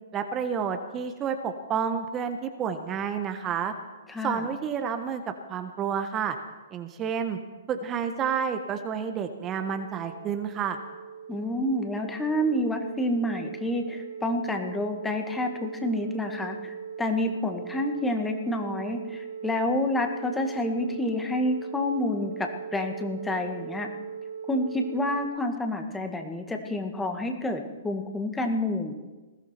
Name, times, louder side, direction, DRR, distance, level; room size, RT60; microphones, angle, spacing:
voice 1, 0.1-3.7 4.2-5.2 5.5-6.4 6.7-7.4 7.7-10.8, right 7 dB, 25° right, 7 dB, 1.3 m, -30 dB
voice 2, 4.1-4.5 11.3-23.9 24.5-28.9, left 1 dB, 10° left, 5 dB, 1.9 m, -29 dB
sound 1, 8.3-25.2, right 7 dB, 50° right, 1.0 m, -40 dB
20.5 x 15.5 x 4.5 m, 1.2 s
figure-of-eight pair, 115°, 0 cm